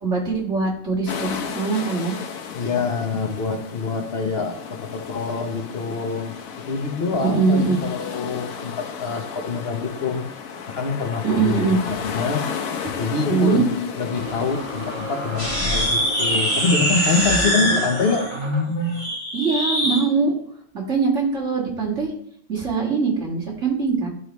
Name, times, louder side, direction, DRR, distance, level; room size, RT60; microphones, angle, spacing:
voice 1, 0.0-2.2 7.2-7.8 11.2-11.8 13.3-13.6 17.4-17.8 19.3-20.3 20.9-22.1 22.5-24.1, right 4 dB, 55° right, -4 dB, 2.5 m, -22 dB
sound 1, 1.1-16.2, left 6 dB, 75° left, 1.2 m, -34 dB
voice 2, 2.5-6.3 6.7-10.2 10.7-12.5 13.0-18.3, left 4 dB, 50° left, 3 dB, 1.2 m, -25 dB
sound 2, 14.0-18.8, right 1 dB, 20° right, 1.6 m, -34 dB
sound 3, 15.3-20.0, equal, 20° left, 2.1 m, -23 dB
12.5 x 4.9 x 3.1 m, 0.69 s
omnidirectional pair, 1.5 m